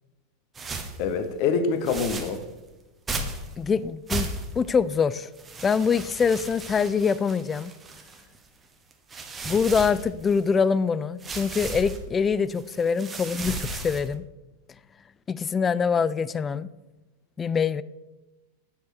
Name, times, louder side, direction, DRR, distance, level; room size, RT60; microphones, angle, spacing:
sound 1, 0.5-1.0 1.8-2.4 3.1-3.5 4.1-4.7 5.4-8.4 8.9-10.5 11.2-12.0 12.5-14.2, right 3 dB, 20° right, 1.0 m, -35 dB
voice 1, 1.0-2.4, left 5 dB, 45° left, 9 dB, 1.0 m, -25 dB
voice 2, 3.6-4.3 4.6-5.3 5.6-7.7 9.4-14.2 15.3-16.7 17.4-17.8, left 6 dB, 20° left, 18 dB, 0.3 m, -24 dB
8.3 x 6.3 x 6.2 m, 1.1 s
figure-of-eight pair, 90°, 0 cm